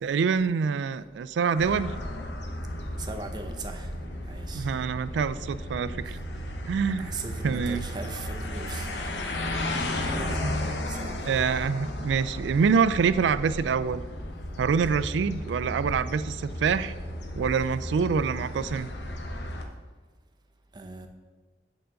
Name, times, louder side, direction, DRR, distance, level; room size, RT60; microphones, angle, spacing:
voice 1, 0.0-1.9 4.5-6.2 6.7-7.1 7.4-7.9 10.4-10.5 11.3-14.0 14.6-16.9 17.3-18.9, right 6 dB, 85° right, 0.3 m, -26 dB
sound 1, 1.5-19.6, left 1 dB, 80° left, 0.9 m, -34 dB
voice 2, 3.0-3.9 4.2-4.7 6.1-6.2 6.8-9.8 10.1-10.4 10.9-11.2 20.7-21.1, right 3 dB, 25° right, 0.5 m, -40 dB
7.0 x 3.8 x 6.3 m
head